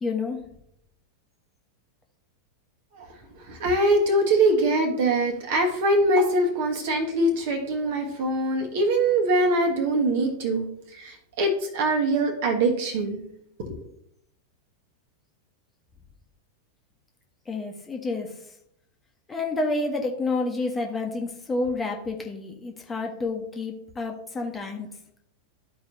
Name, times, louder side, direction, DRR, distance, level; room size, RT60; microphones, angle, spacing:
voice 1, 0.0-0.4 17.5-18.3 19.3-24.9, left 3 dB, 15° left, 2 dB, 1.1 m, -29 dB
voice 2, 3.5-13.2 13.6-13.8, right 1 dB, 50° right, 3 dB, 1.3 m, -23 dB
13.0 x 4.6 x 2.7 m, 0.74 s
figure-of-eight pair, 90°, 0 cm